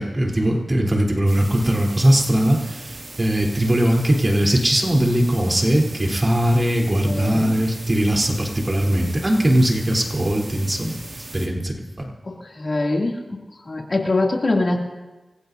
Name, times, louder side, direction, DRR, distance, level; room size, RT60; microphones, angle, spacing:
voice 1, 0.0-11.0 11.3-12.1, right 1 dB, 30° right, -1 dB, 3.6 m, -20 dB
sound 1, 1.3-11.5, right 2 dB, 50° right, 2.4 m, -38 dB
voice 2, 7.0-7.5 12.2-13.4 13.6-14.8, left 2 dB, 45° left, 0 dB, 2.7 m, -23 dB
28.0 x 15.5 x 2.7 m, 1.2 s
cardioid pair, 65°, 0 cm